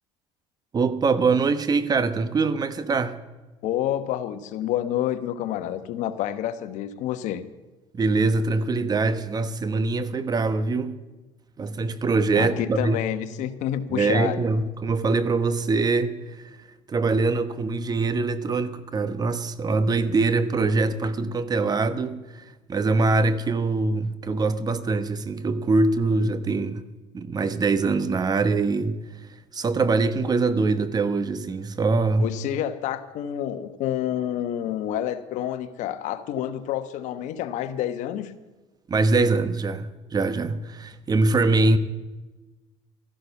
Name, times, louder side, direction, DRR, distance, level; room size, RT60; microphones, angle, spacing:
voice 1, 0.7-3.1 7.9-10.9 11.6-13.0 13.9-16.2 16.9-26.8 27.1-29.0 29.5-32.3 38.9-41.8, right 3 dB, 30° right, 1.0 m, -23 dB
voice 2, 3.6-7.4 12.3-14.5 32.2-38.3 41.6-41.7, left 11 dB, 70° left, 1.1 m, -28 dB
14.0 x 11.5 x 7.0 m
supercardioid pair, 100°, 13 cm